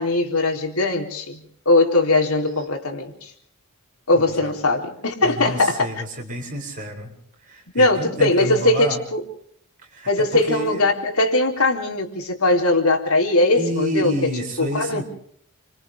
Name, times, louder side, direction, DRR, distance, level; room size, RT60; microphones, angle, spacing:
voice 1, 0.0-3.3 4.1-5.9 7.7-9.2 10.1-14.3 14.6-15.0, left 2 dB, 90° left, 3 dB, 3.9 m, -20 dB
voice 2, 4.1-4.5 5.2-7.1 7.4-9.0 9.9-10.8 13.5-15.0, right 1 dB, 40° right, 0 dB, 7.6 m, -29 dB
29.5 x 26.0 x 3.7 m, 0.65 s
head